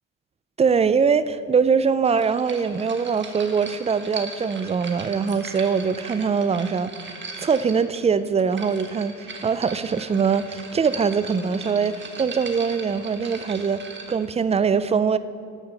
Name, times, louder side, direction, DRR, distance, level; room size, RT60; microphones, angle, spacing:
voice 1, 0.6-13.8 14.1-15.2, right 6 dB, 20° right, 14 dB, 0.4 m, -22 dB
sound 1, 2.1-14.3, right 4 dB, 40° right, 1.4 m, -39 dB
13.0 x 5.5 x 5.6 m, 2.5 s
cardioid pair, 90°, 30 cm